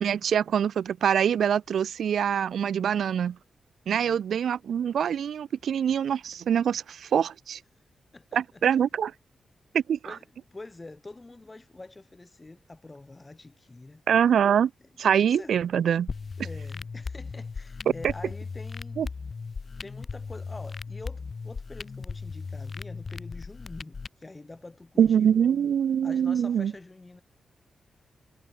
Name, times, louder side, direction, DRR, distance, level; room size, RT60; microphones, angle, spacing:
voice 1, 0.0-3.4 3.9-7.6 8.3-9.1 9.7-10.0 14.1-14.7 15.0-16.1 18.0-18.1 19.0-19.1 25.0-26.7, right 8 dB, 80° right, 0.6 m, -24 dB
voice 2, 8.1-8.6 10.0-10.2 10.5-14.0 15.0-15.6 16.4-19.0 19.8-25.7 26.0-27.2, left 2 dB, 25° left, 4.4 m, -46 dB
sound 1, 16.1-24.1, left 4 dB, 45° left, 0.7 m, -37 dB
cardioid pair, 85°, 0 cm